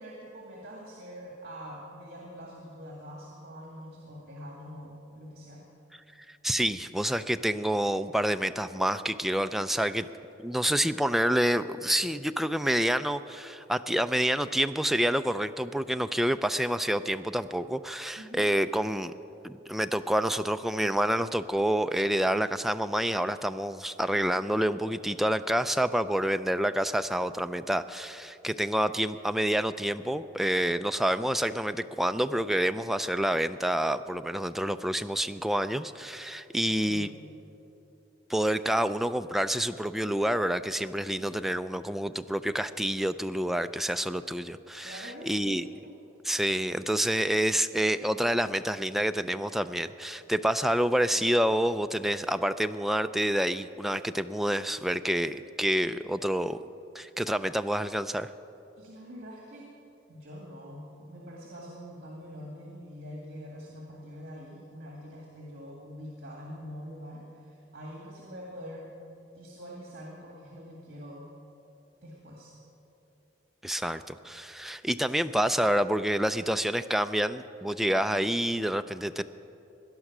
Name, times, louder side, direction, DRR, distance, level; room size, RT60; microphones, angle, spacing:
voice 1, 0.0-5.6 18.2-18.5 36.7-37.1 44.8-46.0 58.8-59.7 60.1-68.9 69.2-71.3 72.0-72.6 75.1-75.2, equal, 55° right, -2 dB, 2.1 m, -44 dB
voice 2, 6.4-10.1 10.4-19.1 19.4-37.1 38.3-45.6 46.2-56.6 56.9-58.3 73.6-79.2, equal, ahead, 9 dB, 0.3 m, -28 dB
18.0 x 11.0 x 6.1 m, 2.9 s
head